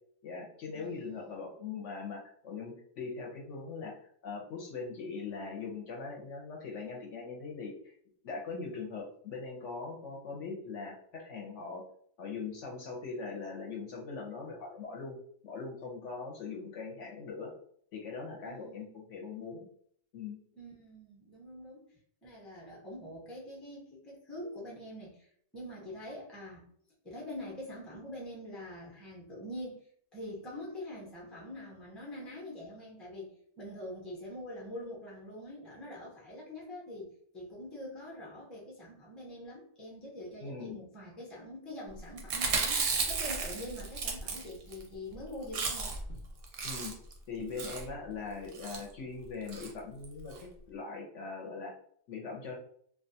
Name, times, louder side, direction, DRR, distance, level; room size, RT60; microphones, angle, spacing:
voice 1, 0.2-7.7 8.2-11.8 12.2-15.2 15.4-17.5 17.9-19.7 20.1-20.4 40.4-40.8 46.6-46.9 47.3-51.7 52.1-52.5, left 4 dB, 65° left, -1 dB, 0.9 m, -41 dB
voice 2, 0.7-1.4 18.4-18.9 20.6-26.7 27.0-29.8 30.1-46.2, left 1 dB, ahead, -4 dB, 0.5 m, -45 dB
Chewing mastication, 42.2-44.8 45.1-45.2 45.4-46.1 46.4-47.1 47.6-47.9 48.5-48.8 49.5-49.7 50.0-50.1 50.3-50.4, right 4 dB, 60° right, 0.6 m, -33 dB
2.5 x 2.2 x 2.7 m, 0.62 s
omnidirectional pair, 1.4 m